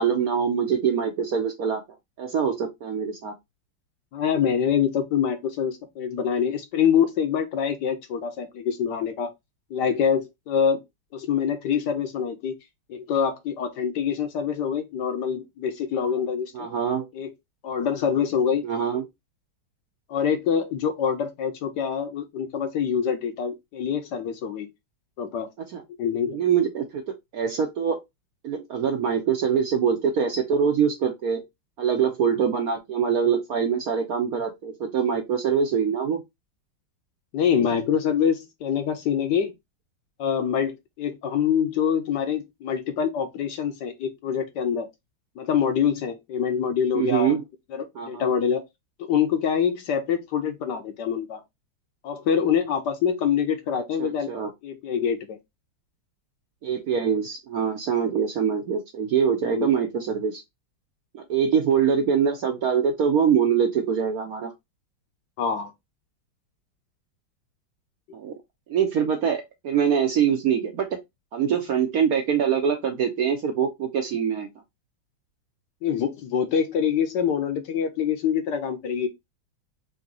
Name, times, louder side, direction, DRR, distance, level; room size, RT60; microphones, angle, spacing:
voice 1, 0.0-1.8 2.2-3.3 16.5-17.1 18.6-19.0 26.3-27.0 27.3-28.0 28.4-31.4 31.8-36.2 46.9-47.4 48.0-48.3 53.7-54.5 56.6-60.4 61.1-64.5 68.1-68.3 68.7-70.9 71.3-74.5, right 7 dB, 65° right, 0.9 m, -24 dB
voice 2, 4.1-9.3 9.7-10.8 11.1-12.5 12.9-16.7 17.1-17.3 17.6-18.6 20.1-24.7 25.2-25.5 26.0-26.4 37.3-39.5 40.2-44.9 45.4-47.3 47.7-48.6 49.0-51.4 52.0-54.3 54.6-55.4 59.4-59.7 65.4-65.7 75.8-79.1, left 7 dB, 70° left, 1.1 m, -25 dB
3.9 x 2.7 x 3.6 m
omnidirectional pair, 2.2 m